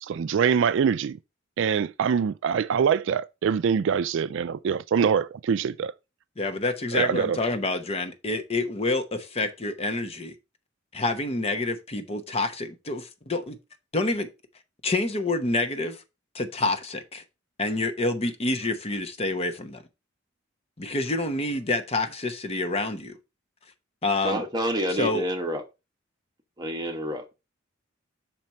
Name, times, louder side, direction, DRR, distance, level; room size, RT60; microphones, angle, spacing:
voice 1, 0.0-1.2 1.6-5.9 6.9-7.4, right 7 dB, 65° right, 0.3 m, -24 dB
voice 2, 6.4-10.3 10.9-13.6 13.9-14.3 14.8-16.0 16.3-17.2 17.6-19.8 20.8-23.2 24.0-24.4 24.9-25.2, left 2 dB, 30° left, 0.9 m, -28 dB
voice 3, 24.2-25.6 26.6-27.4, equal, 20° right, 1.2 m, -28 dB
5.8 x 4.5 x 5.3 m
head